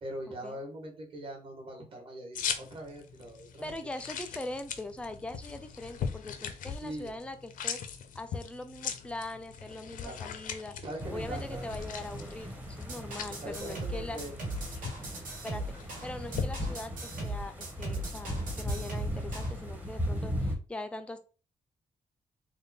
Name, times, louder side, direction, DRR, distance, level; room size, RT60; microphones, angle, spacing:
voice 1, 0.0-4.0 6.8-7.1 10.0-10.2 10.8-11.7 13.4-14.3, right 1 dB, 40° right, 0 dB, 1.2 m, -42 dB
sound 1, 2.4-16.5, left 7 dB, 90° left, 0.5 m, -40 dB
voice 2, 3.6-7.8 8.1-10.8 11.1-14.2 15.4-21.2, left 2 dB, 10° left, 8 dB, 0.3 m, -41 dB
sound 2, 11.0-20.5, equal, 10° right, 0.7 m, -37 dB
sound 3, 12.9-19.5, right 2 dB, 80° right, 1.6 m, -39 dB
3.5 x 2.2 x 3.9 m, 0.35 s
wide cardioid pair, 175°, 14 cm